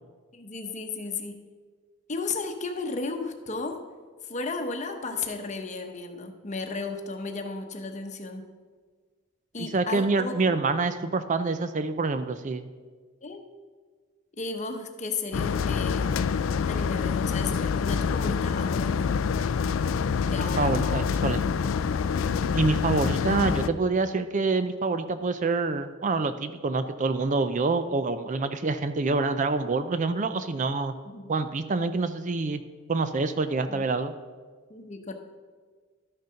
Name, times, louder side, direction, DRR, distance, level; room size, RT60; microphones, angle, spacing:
voice 1, 0.3-1.4 2.1-3.8 4.2-8.5 9.5-10.6 13.2-13.4 14.3-16.1 16.7-19.3 20.3-21.2 31.1-31.3 33.7-33.8 34.7-35.1, left 3 dB, 35° left, 5 dB, 0.9 m, -34 dB
voice 2, 9.6-12.7 20.6-21.4 22.5-30.9 31.3-32.6 32.9-34.1, right 3 dB, 35° right, 11 dB, 0.4 m, -26 dB
sound 1, 15.3-23.7, left 6 dB, 65° left, 0.4 m, -26 dB
12.0 x 6.6 x 5.6 m, 1.5 s
head